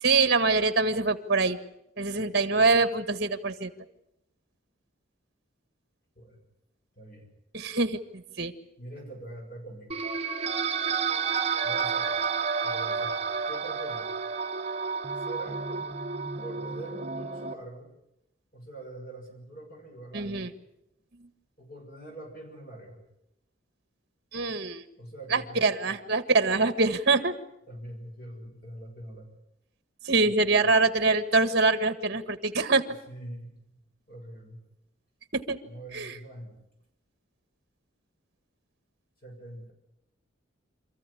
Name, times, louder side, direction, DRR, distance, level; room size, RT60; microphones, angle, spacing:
voice 1, 0.0-1.6 2.0-3.7 7.5-8.5 20.1-20.5 24.3-24.8 25.3-27.3 30.0-32.8 35.3-35.6 35.9-36.1, right 3 dB, 55° right, 10 dB, 1.7 m, -24 dB
voice 2, 6.9-7.3 8.8-10.0 11.6-12.2 12.6-14.1 15.1-15.9 16.4-17.9 18.5-20.5 21.6-23.0 25.0-25.9 27.7-29.3 30.2-30.3 30.6-30.7 33.1-33.6 34.1-34.6 35.6-36.5 39.2-39.7, right 1 dB, 45° left, 1 dB, 6.8 m, -44 dB
sound 1, 9.9-17.5, right 5 dB, 30° right, 1.3 m, -30 dB
27.5 x 14.5 x 10.0 m, 0.84 s
head